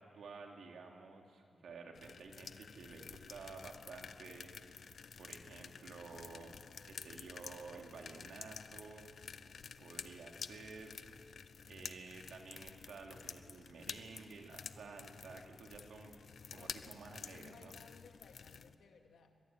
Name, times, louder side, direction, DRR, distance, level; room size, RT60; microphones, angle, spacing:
voice 1, 0.0-4.8 5.2-6.6 6.8-9.1 9.8-11.0 11.6-16.1 16.5-17.8, right 4 dB, 75° right, 2 dB, 3.0 m, -52 dB
sound 1, 2.0-18.8, left 6 dB, 50° left, 0.7 m, -51 dB
voice 2, 16.5-19.3, left 6 dB, 85° left, 4 dB, 2.4 m, -61 dB
23.5 x 23.0 x 9.4 m, 2.6 s
wide cardioid pair, 175°, 0 cm